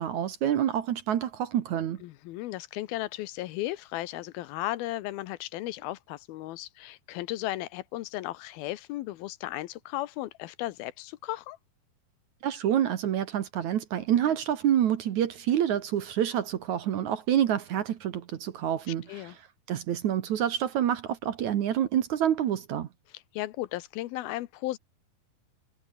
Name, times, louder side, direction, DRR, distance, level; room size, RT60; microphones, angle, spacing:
voice 1, 0.0-2.0 12.4-19.3 19.7-22.9, right 10 dB, 60° right, 2.3 m, -27 dB
voice 2, 2.0-11.6 19.1-19.4 23.1-24.8, left 16 dB, 80° left, 2.6 m, -35 dB
omnidirectional pair, 4.4 m